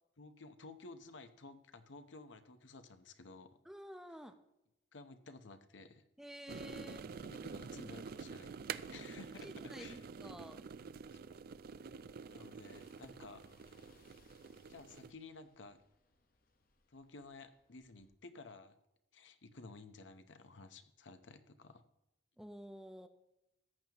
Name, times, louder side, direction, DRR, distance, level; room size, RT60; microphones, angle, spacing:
voice 1, 0.2-3.5 4.9-6.0 7.1-10.1 12.3-13.4 14.7-15.8 16.9-18.8 19.1-21.8, left 3 dB, 80° left, 10 dB, 0.9 m, -54 dB
voice 2, 3.7-4.4 6.2-7.1 9.4-10.6 22.4-23.1, equal, ahead, 6 dB, 0.6 m, -51 dB
sound 1, 6.5-15.1, right 6 dB, 55° right, 0.3 m, -48 dB
Car passing by / Engine, 10.2-18.1, left 3 dB, 50° left, 1.0 m, -72 dB
14.0 x 8.9 x 2.9 m, 0.87 s
head